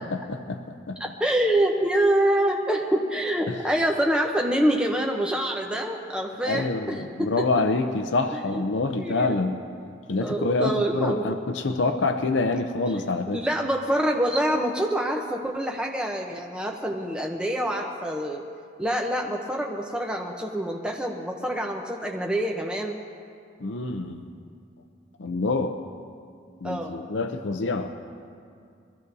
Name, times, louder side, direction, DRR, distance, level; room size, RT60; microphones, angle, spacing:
voice 1, 0.3-1.0 3.5-3.6 6.5-9.6 10.1-13.4 23.6-24.3 25.2-25.8 26.6-27.9, left 3 dB, 80° left, 6 dB, 0.7 m, -26 dB
voice 2, 1.2-7.5 8.3-8.6 9.0-9.4 10.2-11.3 12.9-13.1 13.3-18.5 18.8-23.0 26.6-26.9, right 1 dB, 5° right, 0 dB, 0.7 m, -26 dB
23.0 x 14.5 x 2.7 m, 2.3 s
head